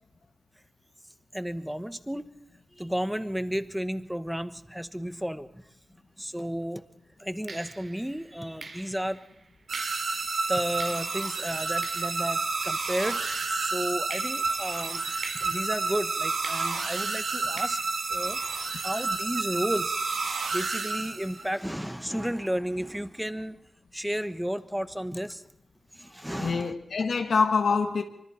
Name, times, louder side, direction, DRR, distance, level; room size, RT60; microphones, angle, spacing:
voice 1, 1.3-2.3 2.7-5.6 6.2-6.8 7.2-9.2 10.1-10.2 10.5-13.2 13.5-17.8 18.1-18.4 18.8-20.0 20.5-23.6 23.9-25.4 25.9-26.7, equal, 5° right, 1.0 m, -32 dB
sound 1, 6.3-6.5 7.5-13.6 14.1-18.8, right 3 dB, 60° right, 2.8 m, -46 dB
sound 2, 9.7-21.6, right 4 dB, 80° right, 2.7 m, -30 dB
voice 2, 26.4-28.0, left 5 dB, 75° left, 1.7 m, -25 dB
25.0 x 24.5 x 4.3 m
wide cardioid pair, 130°, 0 cm